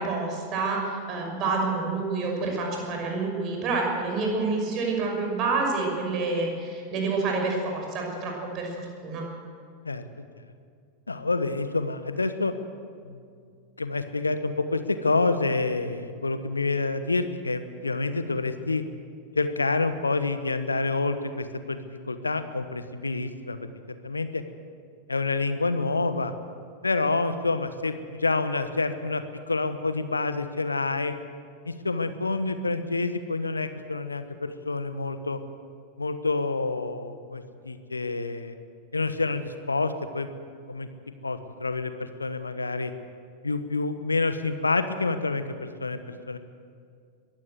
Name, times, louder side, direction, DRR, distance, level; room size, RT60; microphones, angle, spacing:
voice 1, 0.0-9.2, right 3 dB, 35° right, 1 dB, 6.0 m, -28 dB
voice 2, 11.1-12.5 13.1-13.2 13.8-18.8 19.3-23.6 24.0-24.4 25.1-26.3 26.8-31.1 31.6-35.4 36.0-38.5 38.9-40.3 40.7-40.9 41.2-42.9 43.4-46.4, left 3 dB, 80° left, 11 dB, 1.1 m, -28 dB
22.0 x 15.5 x 7.9 m, 2.2 s
figure-of-eight pair, 90°, 0 cm